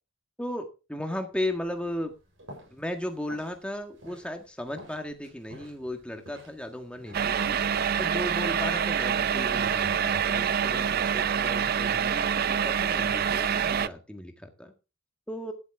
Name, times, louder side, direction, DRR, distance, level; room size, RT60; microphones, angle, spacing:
voice 1, 0.4-2.1 2.7-14.7 15.3-15.5, left 1 dB, 5° left, 4 dB, 1.7 m, -36 dB
sound 1, 1.3-13.5, equal, 75° right, 7.6 m, -52 dB
sound 2, 7.1-13.9, right 7 dB, 50° right, 0.5 m, -26 dB
12.5 x 10.5 x 3.6 m, 0.31 s
head